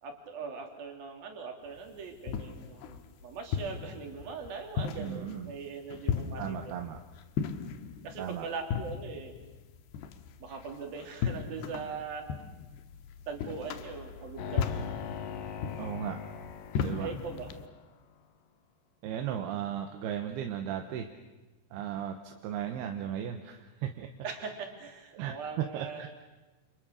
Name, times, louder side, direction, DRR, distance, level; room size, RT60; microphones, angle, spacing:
voice 1, 0.0-6.7 8.0-9.4 10.4-12.2 13.3-14.8 17.0-17.5 24.2-26.0, right 5 dB, 60° right, 3 dB, 4.9 m, -41 dB
sound 1, 1.8-17.7, left 7 dB, 85° left, 3.2 m, -37 dB
voice 2, 5.0-5.5 6.4-7.0 8.2-8.5 15.8-16.2 16.8-17.1 19.0-21.1 21.7-24.1 25.1-25.3 25.7-26.1, right 9 dB, 75° right, 5 dB, 3.1 m, -36 dB
sound 2, 14.4-17.8, left 8 dB, 60° left, 2.8 m, -41 dB
29.5 x 28.5 x 6.5 m, 1.1 s
omnidirectional pair, 4.8 m